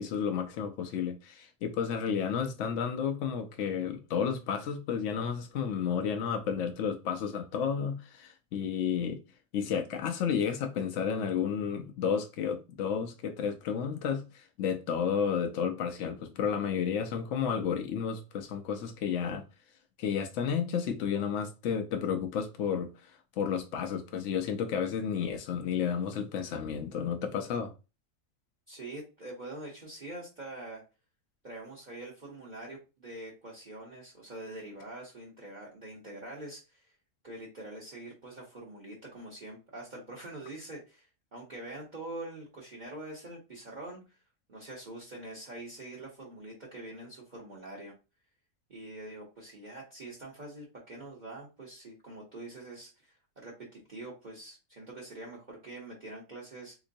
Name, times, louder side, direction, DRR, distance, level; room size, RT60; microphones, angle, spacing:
voice 1, 0.0-9.2 9.5-19.5 20.0-27.7, left 7 dB, 70° left, 0.9 m, -32 dB
voice 2, 28.7-30.8 31.4-36.9 37.2-44.2 44.5-48.0 48.7-56.8, right 2 dB, 40° right, 0.9 m, -44 dB
3.7 x 2.9 x 2.6 m
omnidirectional pair, 1.4 m